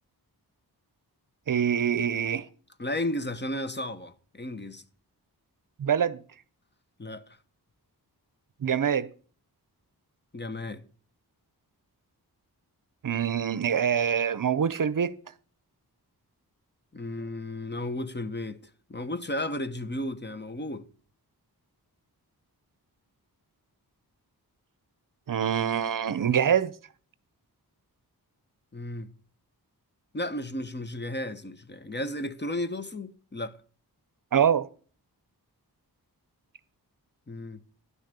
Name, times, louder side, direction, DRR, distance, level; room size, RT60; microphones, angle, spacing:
voice 1, 1.5-2.5 5.8-6.2 8.6-9.1 13.0-15.1 25.3-26.7 34.3-34.7, right 8 dB, 55° right, 0.7 m, -25 dB
voice 2, 2.8-4.8 7.0-7.2 10.3-10.8 16.9-18.6 18.9-20.9 28.7-29.1 30.1-33.6 37.3-37.6, left 1 dB, 25° left, 1.0 m, -33 dB
11.0 x 6.6 x 6.7 m
wide cardioid pair, 65°, 38 cm